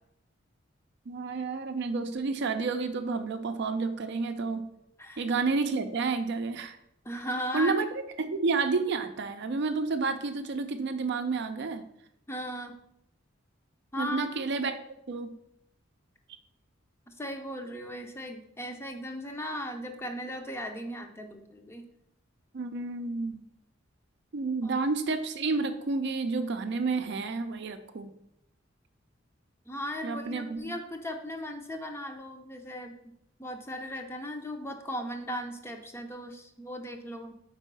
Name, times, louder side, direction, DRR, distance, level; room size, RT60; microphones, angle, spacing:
voice 1, 1.1-4.7 5.2-6.8 7.5-7.9 8.2-11.8 14.0-14.8 15.1-15.3 22.5-23.4 24.3-28.1 30.0-30.7, right 4 dB, 60° right, 8 dB, 0.5 m, -30 dB
voice 2, 7.0-7.8 12.3-12.8 13.9-14.3 17.1-21.8 24.6-24.7 29.7-33.1 33.4-37.3, equal, 15° left, 4 dB, 0.6 m, -37 dB
4.5 x 4.0 x 5.3 m, 0.77 s
head